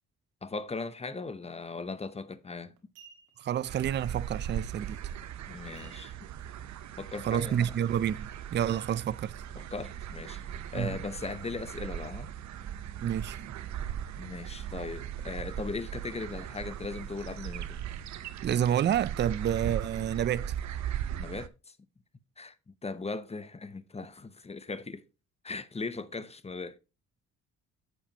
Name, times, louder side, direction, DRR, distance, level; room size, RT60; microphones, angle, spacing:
voice 1, 0.4-2.8 5.5-6.1 7.0-7.7 9.6-10.4 10.7-12.3 14.2-17.8 21.2-21.8 22.4-25.0 25.4-26.8, left 3 dB, 20° left, 0.8 m, -38 dB
sound 1, 2.2-2.3 2.8-3.6 5.8-6.4 6.8-6.9 7.3-7.6 8.7-9.5 10.0-10.1, right 7 dB, 90° right, 1.7 m, -57 dB
voice 2, 3.4-5.0 7.2-9.3 10.7-11.0 13.0-13.5 18.4-20.6, right 10 dB, 35° right, 0.4 m, -29 dB
sound 2, 3.7-21.5, right 10 dB, 65° right, 0.8 m, -39 dB
8.5 x 7.6 x 2.9 m
cardioid pair, 90°, 30 cm